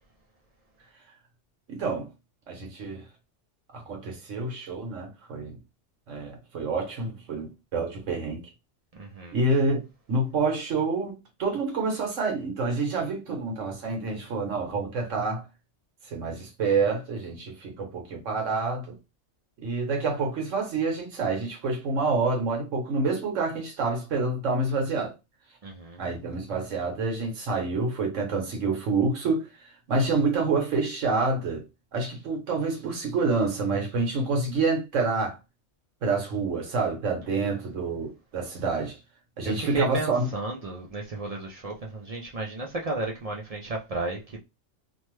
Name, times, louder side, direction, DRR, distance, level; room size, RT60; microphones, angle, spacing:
voice 1, 1.7-2.1 2.5-3.0 3.7-5.6 6.1-8.4 9.3-15.4 16.1-19.0 19.6-25.1 26.0-29.5 29.9-31.6 31.9-35.4 36.0-39.0 39.4-40.3, right 3 dB, 85° right, 1.3 m, -27 dB
voice 2, 8.9-9.3 25.6-26.0 39.4-44.4, right 3 dB, 65° right, 0.3 m, -33 dB
2.9 x 2.1 x 3.1 m
omnidirectional pair, 1.3 m